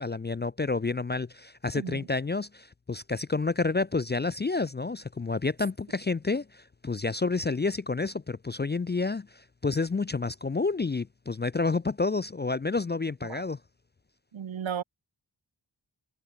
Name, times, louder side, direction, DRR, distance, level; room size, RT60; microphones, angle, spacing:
voice 1, 0.0-13.6, left 3 dB, 25° left, 0.3 m, -29 dB
voice 2, 1.7-2.1 13.3-13.4 14.3-14.8, right 8 dB, 75° right, 0.8 m, -34 dB
wide cardioid pair, 70°, 47 cm